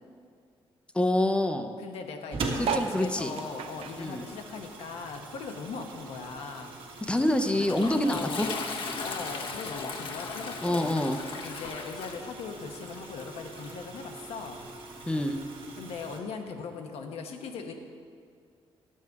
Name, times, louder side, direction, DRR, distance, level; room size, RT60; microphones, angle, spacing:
voice 1, 0.9-1.7 2.6-3.3 4.0-4.2 7.1-8.6 10.6-11.2 15.1-15.4, left 1 dB, 10° left, 7 dB, 0.5 m, -26 dB
voice 2, 1.8-6.7 8.0-8.5 9.0-10.9 11.4-14.6 15.8-17.7, left 5 dB, 90° left, 4 dB, 1.0 m, -39 dB
sound 1, 2.3-16.2, right 3 dB, 60° right, 1.5 m, -42 dB
sound 2, 2.6-5.4 5.7-7.2 7.7-7.8 8.0-8.1 8.3-8.7 9.4-9.5, right 6 dB, 80° right, 0.6 m, -36 dB
Toilet flush, 7.0-15.4, left 4 dB, 60° left, 0.9 m, -39 dB
11.0 x 7.6 x 4.7 m, 2.2 s
cardioid pair, 135°, 10 cm